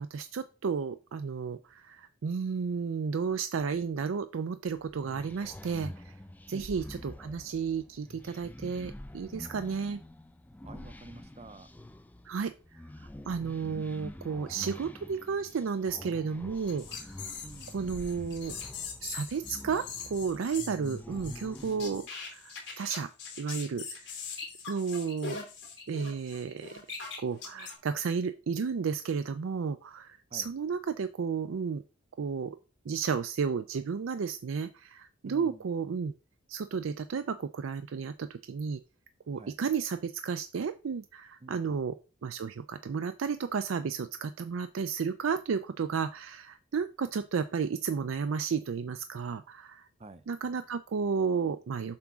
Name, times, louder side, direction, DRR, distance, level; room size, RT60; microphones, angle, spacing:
voice 1, 0.0-6.1 6.5-10.0 12.2-17.1 17.7-18.5 19.0-19.9 20.1-23.1 23.4-24.1 24.7-25.4 25.9-26.7 27.2-31.8 32.2-32.6 32.9-36.1 36.5-38.8 39.3-42.0 42.2-49.9 50.3-52.0, right 6 dB, 80° right, 10 dB, 0.4 m, -33 dB
sound 1, 4.7-22.1, left 1 dB, 10° left, 0.3 m, -47 dB
voice 2, 10.6-11.7 17.4-17.8 30.3-30.5 35.2-35.6 39.4-39.6 41.4-41.8 50.0-50.3, right 2 dB, 30° right, 11 dB, 0.6 m, -48 dB
sound 2, 16.6-27.7, left 6 dB, 60° left, 3.0 m, -42 dB
7.5 x 3.5 x 6.0 m, 0.33 s
head